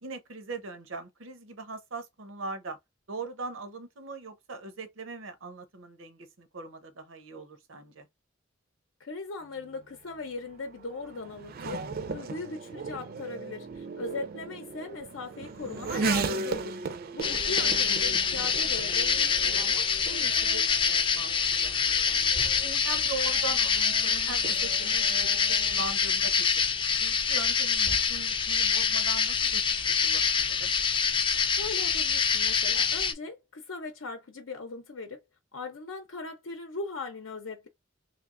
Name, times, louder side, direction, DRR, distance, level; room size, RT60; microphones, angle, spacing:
voice 1, 0.0-2.8 3.1-8.1 13.8-14.1 17.1-17.2 20.9-21.8 22.1-22.2 22.6-26.6 27.0-30.7, right 3 dB, 90° right, 0.9 m, -40 dB
voice 2, 9.0-16.8 17.1-20.7 31.5-35.2 35.5-37.7, left 3 dB, 90° left, 0.7 m, -39 dB
Race car auto racing / Accelerating revving vroom, 9.6-25.8, right 4 dB, 50° right, 0.4 m, -37 dB
sound 1, 17.2-33.1, left 6 dB, 25° left, 0.4 m, -26 dB
3.3 x 3.2 x 2.5 m
head